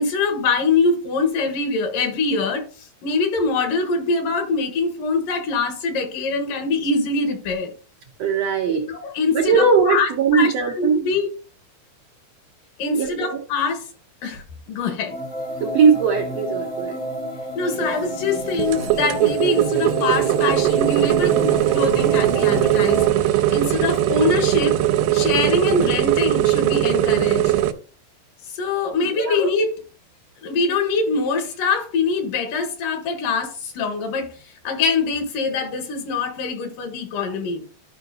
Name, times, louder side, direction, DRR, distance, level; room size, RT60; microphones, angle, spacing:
voice 1, 0.0-7.7 8.9-11.3 12.8-13.8 14.2-15.2 17.5-24.8 25.1-27.5 28.5-29.8 30.4-34.3 34.6-37.6, left 4 dB, 70° left, 3.0 m, -23 dB
voice 2, 8.2-8.8 9.3-11.0 12.9-13.4 15.6-17.0 29.0-29.4, right 5 dB, 70° right, 1.6 m, -19 dB
sound 1, 15.1-23.1, right 1 dB, 90° left, 0.6 m, -30 dB
sound 2, 18.6-27.7, right 13 dB, 85° right, 2.4 m, -20 dB
12.5 x 5.6 x 2.8 m
omnidirectional pair, 4.1 m